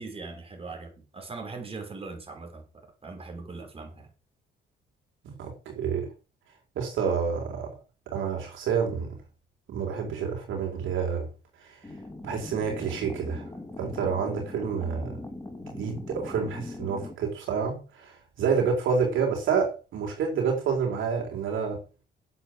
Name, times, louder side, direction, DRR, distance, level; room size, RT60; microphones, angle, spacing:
voice 1, 0.0-4.1, right 3 dB, 30° right, 5.8 m, -40 dB
voice 2, 5.2-6.1 6.7-7.7 8.1-9.2 9.7-11.3 11.6-11.8 12.2-13.4 13.8-15.2 15.7-21.8, right 6 dB, 80° right, 4.7 m, -28 dB
sound 1, 11.8-17.2, left 2 dB, 15° left, 2.9 m, -41 dB
9.8 x 8.1 x 7.8 m
cardioid pair, 90°, 20 cm